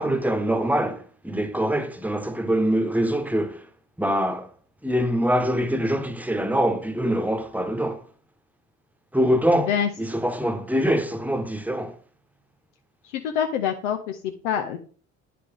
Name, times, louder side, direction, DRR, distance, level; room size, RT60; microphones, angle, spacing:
voice 1, 0.0-3.7 4.0-4.5 4.8-8.0 9.1-12.0, equal, 5° right, 1.1 m, -24 dB
voice 2, 13.0-14.8, left 8 dB, 85° left, 0.7 m, -26 dB
9.5 x 5.9 x 3.4 m
hypercardioid pair, 55°, 36 cm